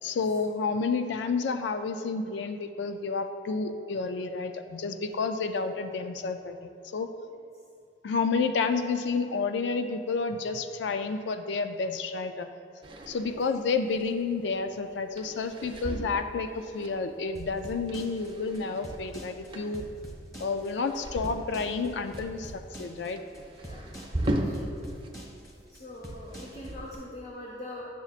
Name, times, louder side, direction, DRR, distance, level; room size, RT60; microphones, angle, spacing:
voice 1, 0.0-7.1 8.0-12.5 13.1-19.9 20.4-23.2, left 4 dB, 85° left, 8 dB, 0.4 m, -30 dB
sound 1, 12.8-25.1 25.4-27.0, right 1 dB, 30° right, 0.7 m, -38 dB
sound 2, 17.3-26.9, right 1 dB, 20° left, 1.5 m, -44 dB
voice 2, 23.6-23.9 24.2-24.8 25.7-27.8, left 1 dB, 40° left, -3 dB, 0.9 m, -43 dB
11.0 x 6.9 x 2.4 m, 2.5 s
head